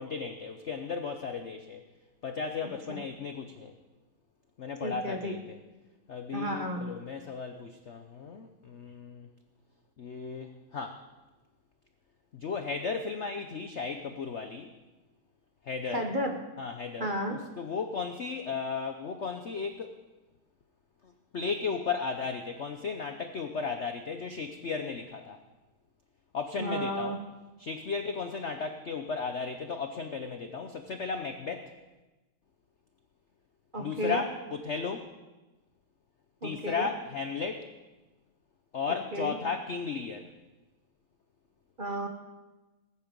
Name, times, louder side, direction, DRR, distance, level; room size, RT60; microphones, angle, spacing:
voice 1, 0.0-1.8 2.2-3.7 4.6-5.6 6.1-9.3 10.0-11.0 12.3-14.7 15.6-16.1 16.6-19.9 21.0-25.4 26.3-27.2 27.6-31.7 33.8-35.1 36.4-37.7 38.7-40.3, left 5 dB, 70° left, 6 dB, 0.6 m, -35 dB
voice 2, 2.6-3.0 4.8-5.4 6.3-6.9 15.9-16.4 17.0-17.4 26.6-27.2 33.7-34.2 36.4-36.9 39.1-39.3 41.8-42.1, right 1 dB, 30° right, 3 dB, 1.1 m, -33 dB
19.5 x 9.8 x 5.3 m, 1.1 s
omnidirectional pair, 2.3 m